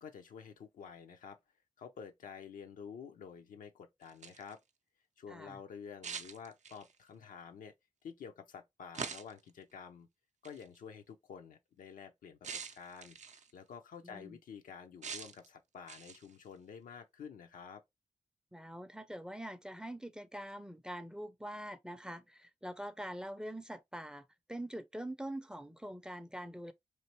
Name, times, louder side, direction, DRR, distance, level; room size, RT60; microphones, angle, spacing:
voice 1, 0.0-1.4 1.8-4.6 5.2-7.7 8.0-10.1 10.4-13.2 13.5-17.8, left 6 dB, 80° left, 0.5 m, -50 dB
sound 1, 4.0-4.5 6.0-7.0 8.9-9.5 10.4-10.6 12.4-13.5 15.0-15.5 15.9-16.3, right 6 dB, 60° right, 0.5 m, -44 dB
voice 2, 5.3-5.6 14.0-14.4 18.5-26.7, right 1 dB, 5° right, 0.4 m, -44 dB
3.1 x 2.6 x 2.9 m
supercardioid pair, 40°, 14 cm